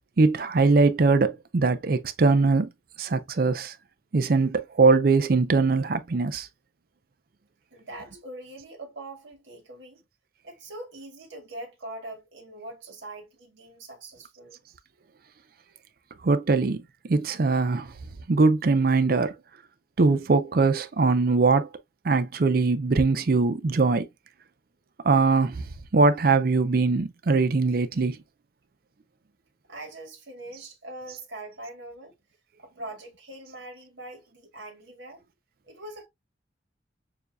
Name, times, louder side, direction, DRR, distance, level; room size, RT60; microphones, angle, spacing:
voice 1, 0.2-2.7 3.0-3.7 4.1-6.5 16.2-16.8 17.1-17.9 18.3-19.4 20.0-21.7 22.0-24.1 25.0-25.6 25.9-28.2, right 3 dB, 55° right, 0.5 m, -21 dB
voice 2, 7.7-10.0 10.4-14.6 29.7-32.2 32.6-35.2 35.7-36.1, right 2 dB, 90° right, 1.8 m, -42 dB
6.9 x 2.7 x 2.3 m
head